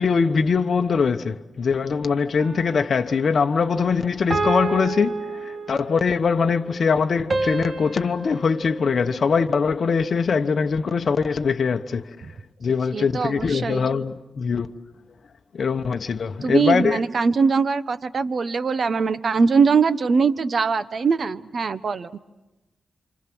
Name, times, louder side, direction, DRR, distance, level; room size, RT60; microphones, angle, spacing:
voice 1, 0.0-12.1 12.6-14.7 15.5-17.0, left 5 dB, 55° left, 1.1 m, -22 dB
sound 1, 2.4-3.1 4.3-6.1 7.3-9.7, right 3 dB, 35° right, 1.7 m, -29 dB
voice 2, 12.9-13.9 16.4-22.1, right 5 dB, 55° right, 0.9 m, -22 dB
29.0 x 27.0 x 6.2 m
cardioid pair, 95°, 0 cm